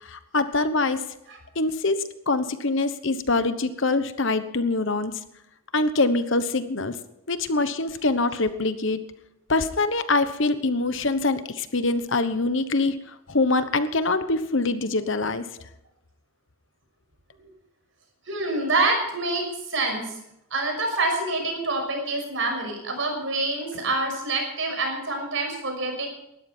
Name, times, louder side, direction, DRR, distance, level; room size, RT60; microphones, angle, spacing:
voice 1, 0.0-1.0 1.5-5.2 5.7-7.0 7.3-9.0 9.5-13.0 13.3-15.5, left 3 dB, 60° left, 11 dB, 1.1 m, -24 dB
voice 2, 18.3-20.0 20.5-26.1, right 2 dB, 60° right, 3 dB, 6.1 m, -26 dB
19.0 x 13.5 x 4.5 m, 0.83 s
head